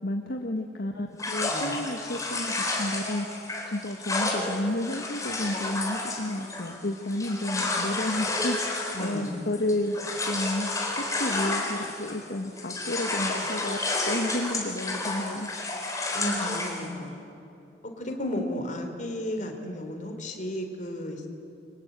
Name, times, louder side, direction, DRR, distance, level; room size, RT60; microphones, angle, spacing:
voice 1, 0.0-9.9 10.2-15.5, left 1 dB, 60° left, 2 dB, 1.6 m, -31 dB
sound 1, 1.2-12.3 12.6-16.9, left 2 dB, 20° left, 4.2 m, -31 dB
voice 2, 8.9-9.4 16.1-17.3 18.0-21.3, left 1 dB, 45° left, 4 dB, 3.8 m, -33 dB
29.5 x 24.0 x 8.3 m, 2.7 s
head